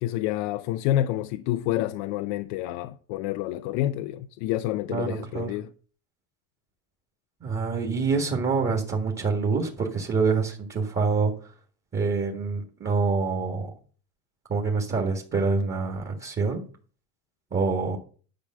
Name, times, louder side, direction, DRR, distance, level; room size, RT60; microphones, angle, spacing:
voice 1, 0.0-5.7, left 13 dB, 80° left, 0.7 m, -28 dB
voice 2, 4.9-5.5 7.4-11.3 11.9-13.7 14.5-16.6 17.5-18.0, right 4 dB, 25° right, 1.8 m, -26 dB
10.5 x 4.9 x 7.5 m
cardioid pair, 130°, 45 cm